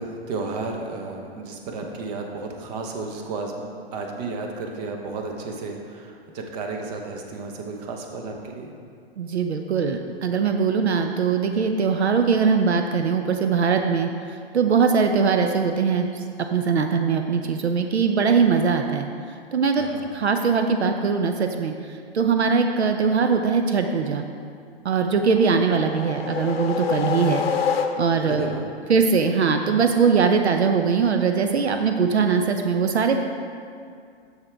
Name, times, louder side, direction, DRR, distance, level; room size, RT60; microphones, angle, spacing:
voice 1, 0.0-8.7 19.8-20.1 28.2-28.7, right 3 dB, 40° right, 2 dB, 1.0 m, -33 dB
voice 2, 9.2-14.1 14.5-16.1 16.5-19.1 19.5-19.9 20.1-21.7 22.1-24.2 24.8-27.4 28.0-28.4 28.9-33.2, right 5 dB, 85° right, 5 dB, 0.6 m, -21 dB
sound 1, 25.3-28.4, left 7 dB, 65° left, 0.7 m, -27 dB
7.3 x 6.9 x 3.4 m, 2.3 s
hypercardioid pair, 125°, 32 cm